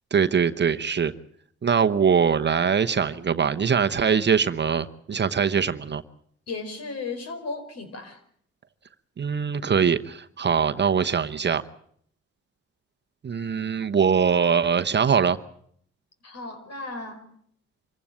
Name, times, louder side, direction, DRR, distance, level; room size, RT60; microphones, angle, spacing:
voice 1, 0.1-1.1 1.6-6.0 9.2-11.6 13.2-15.4, right 6 dB, 35° right, 9 dB, 1.0 m, -22 dB
voice 2, 6.5-8.2 16.2-17.2, left 3 dB, 55° left, 8 dB, 5.2 m, -35 dB
25.5 x 15.5 x 8.9 m, 0.66 s
cardioid pair, 90°, 30 cm